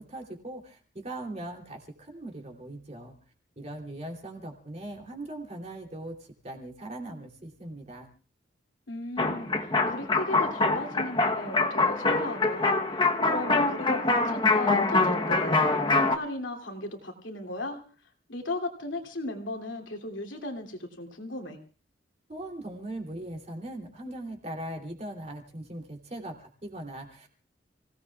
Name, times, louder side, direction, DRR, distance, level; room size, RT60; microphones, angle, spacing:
voice 1, 0.0-3.1 3.6-8.1 22.3-27.4, right 1 dB, 35° right, 2 dB, 3.0 m, -40 dB
voice 2, 8.9-17.8 18.3-21.6, left 1 dB, 80° left, 4 dB, 2.8 m, -36 dB
sound 1, 9.2-16.2, left 3 dB, 25° left, 1.0 m, -25 dB
30.0 x 17.5 x 2.4 m, 0.37 s
head